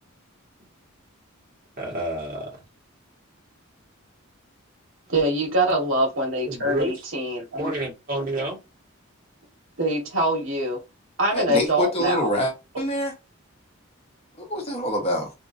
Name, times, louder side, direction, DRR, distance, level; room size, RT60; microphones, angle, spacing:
voice 1, 1.8-2.5 6.5-6.9 7.6-8.6, right 1 dB, 40° right, 1.7 m, -29 dB
voice 2, 5.1-7.7 9.8-10.8 11.2-12.3, right 1 dB, 75° right, 1.6 m, -24 dB
voice 3, 11.3-13.1 14.4-15.3, equal, 30° left, 1.1 m, -26 dB
3.6 x 2.7 x 2.5 m
head